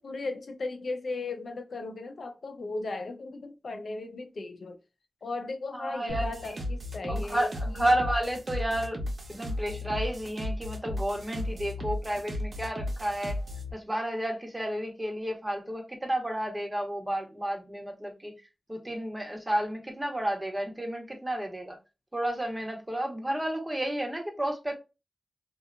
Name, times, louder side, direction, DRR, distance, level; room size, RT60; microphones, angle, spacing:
voice 1, 0.0-4.8 5.2-7.9, left 3 dB, 75° left, 0.5 m, -36 dB
voice 2, 5.7-6.3 7.1-9.0 9.3-13.4 13.7-18.3 18.7-21.8 22.1-24.8, right 1 dB, 20° right, 1.0 m, -31 dB
sound 1, 6.1-13.7, left 1 dB, 60° right, 0.8 m, -35 dB
2.7 x 2.4 x 2.4 m
cardioid pair, 50°, 0 cm